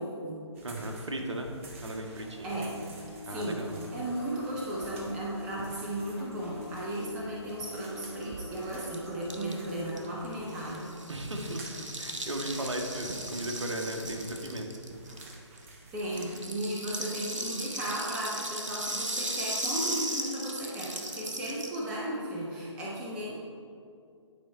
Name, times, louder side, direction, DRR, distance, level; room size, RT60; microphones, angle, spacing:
voice 1, 0.0-0.5 2.4-2.8 3.2-3.6 3.9-10.9 15.9-23.3, right 1 dB, 5° right, -5 dB, 0.4 m, -35 dB
sound 1, 0.5-16.5, right 2 dB, 25° right, 0.8 m, -50 dB
voice 2, 0.6-1.5 1.8-2.6 3.2-3.8 11.1-14.7, right 1 dB, 70° right, 2 dB, 1.1 m, -36 dB
sound 2, 2.1-11.4, left 2 dB, 55° left, 1.9 m, -47 dB
Rattle (instrument), 8.0-8.1 8.2-8.3 8.5-15.6 16.0-21.8, right 1 dB, 85° right, 0.9 m, -37 dB
9.4 x 4.4 x 4.2 m, 2.4 s
figure-of-eight pair, 140°, 16 cm